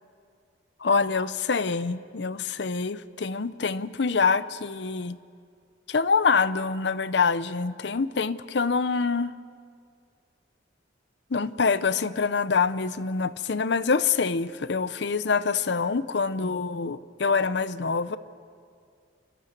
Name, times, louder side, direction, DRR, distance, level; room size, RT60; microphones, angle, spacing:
voice 1, 0.8-5.2 5.9-9.3 11.3-18.2, left 5 dB, 60° left, 0.6 m, -25 dB
28.0 x 13.0 x 9.2 m
head